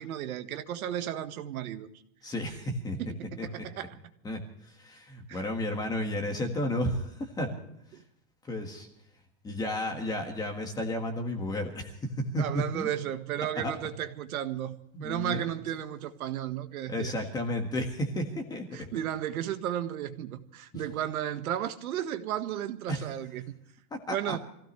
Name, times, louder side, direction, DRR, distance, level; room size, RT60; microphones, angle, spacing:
voice 1, 0.0-1.9 3.0-4.0 5.3-5.4 7.9-8.0 12.4-14.7 15.0-17.1 18.7-23.5 24.1-24.4, right 11 dB, 65° right, 1.7 m, -34 dB
voice 2, 2.2-3.0 3.4-3.6 4.2-7.6 8.4-8.9 9.4-12.9 13.6-13.7 14.9-15.4 16.9-18.9 22.9-23.0 23.9-24.4, left 1 dB, 10° left, 1.6 m, -32 dB
26.5 x 16.0 x 3.2 m
supercardioid pair, 175°, 46 cm